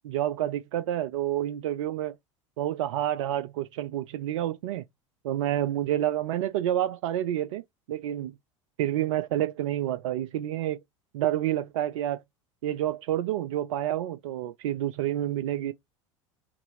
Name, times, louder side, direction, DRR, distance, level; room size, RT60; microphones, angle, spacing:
voice 1, 0.0-2.1 2.6-4.8 5.2-7.6 7.9-8.3 8.8-10.8 11.1-12.2 12.6-15.7, right 12 dB, 70° right, 0.4 m, -29 dB
4.1 x 2.6 x 2.6 m
hypercardioid pair, 80°, 17 cm